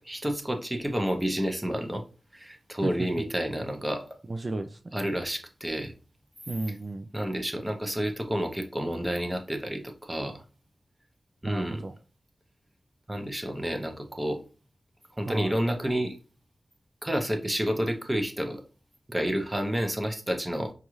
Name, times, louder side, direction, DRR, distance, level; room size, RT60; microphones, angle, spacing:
voice 1, 0.1-2.0 2.3-4.2 4.9-5.9 7.1-10.4 11.4-11.8 13.1-14.4 15.2-16.2 17.0-18.6 19.1-20.7, equal, 15° right, 5 dB, 0.7 m, -30 dB
voice 2, 4.3-4.9 6.5-7.1 11.4-11.9 15.3-15.6, right 2 dB, 40° right, 6 dB, 0.3 m, -33 dB
5.3 x 2.4 x 3.0 m, 0.36 s
wide cardioid pair, 110°, 0 cm